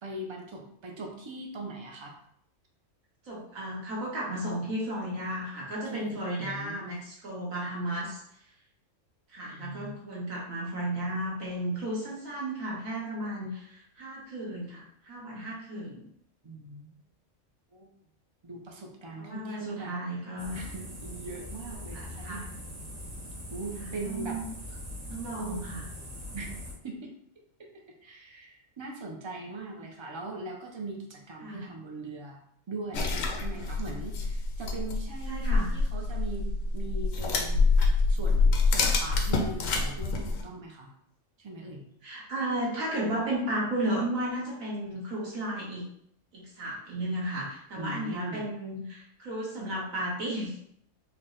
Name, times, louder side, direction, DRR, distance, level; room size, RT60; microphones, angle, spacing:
voice 1, 0.0-2.1 5.9-6.9 9.5-10.0 16.4-16.9 17.7-17.9 18.4-20.0 20.5-22.5 23.5-24.4 25.4-25.7 26.3-26.5 26.8-27.1 27.6-27.7 28.0-32.4 32.7-37.8 38.1-40.9 41.4-41.8 47.8-48.4, right 2 dB, 50° right, 1 dB, 0.3 m, -40 dB
voice 2, 3.2-8.2 9.3-16.0 19.2-20.6 21.9-22.5 23.8-24.5 25.1-25.8 31.4-31.6 35.3-35.7 42.0-45.9 46.3-50.5, right 1 dB, 85° right, -6 dB, 1.7 m, -34 dB
sound 1, 20.4-26.7, left 1 dB, 35° right, 1.0 m, -42 dB
sound 2, 32.9-40.4, left 3 dB, 80° left, 1.0 m, -26 dB
4.4 x 2.1 x 3.7 m, 0.71 s
omnidirectional pair, 1.4 m